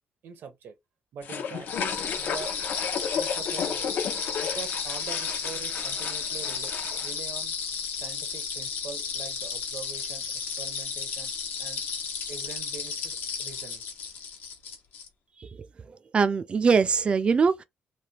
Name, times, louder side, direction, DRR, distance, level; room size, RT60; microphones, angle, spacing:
voice 1, 0.2-0.8 1.1-2.5 3.1-3.9 4.4-6.7 7.0-7.5 7.9-11.3 11.6-11.8 12.3-13.8, right 6 dB, 80° right, 0.9 m, -43 dB
sound 1, 1.2-7.1, left 7 dB, 65° left, 0.5 m, -33 dB
sound 2, 1.7-15.1, left 6 dB, 80° left, 0.8 m, -33 dB
voice 2, 15.4-17.6, right 5 dB, 30° right, 0.3 m, -23 dB
3.3 x 2.1 x 2.8 m
wide cardioid pair, 155°, 3 cm